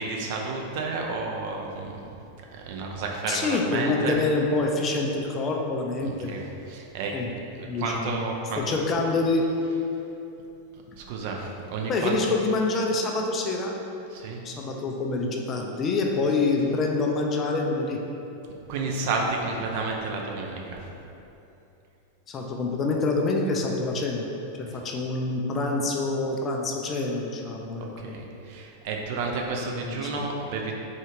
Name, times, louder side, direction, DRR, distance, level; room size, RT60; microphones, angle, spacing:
voice 1, 0.0-2.1 2.5-4.2 6.0-6.4 6.7-7.1 7.6-8.7 11.0-12.2 14.1-14.4 18.7-20.8 24.7-24.8 27.8-30.7, right 3 dB, 50° right, 1 dB, 0.4 m, -31 dB
voice 2, 3.3-6.3 7.1-7.3 7.6-8.3 8.6-9.5 11.9-13.7 14.4-18.0 22.3-24.3 24.6-28.2 29.8-30.2, left 3 dB, 25° left, 1 dB, 0.4 m, -26 dB
3.9 x 2.3 x 3.2 m, 2.9 s
figure-of-eight pair, 90°, 0 cm